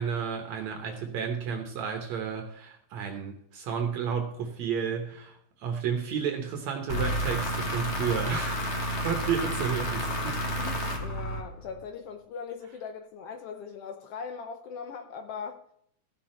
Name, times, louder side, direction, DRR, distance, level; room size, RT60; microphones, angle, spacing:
voice 1, 0.0-10.4, right 7 dB, 70° right, 4 dB, 2.2 m, -32 dB
sound 1, 6.9-11.8, equal, 40° left, 0.9 m, -31 dB
voice 2, 10.5-15.6, left 6 dB, 75° left, 6 dB, 1.4 m, -40 dB
15.0 x 6.2 x 4.3 m, 0.69 s
omnidirectional pair, 3.5 m